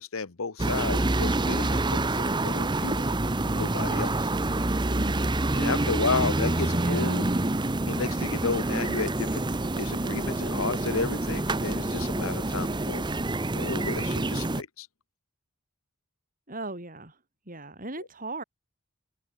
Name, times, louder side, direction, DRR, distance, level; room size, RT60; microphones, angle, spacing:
voice 1, 0.0-3.1 3.4-4.3 5.5-7.3 7.9-13.0 13.6-14.9, left 4 dB, 70° left, 1.1 m, -32 dB
sound 1, 0.6-14.6, right 2 dB, 20° right, 0.9 m, -27 dB
voice 2, 4.8-5.5 5.9-7.2 16.5-17.2 17.5-18.4, right 2 dB, 40° right, 7.5 m, -39 dB
head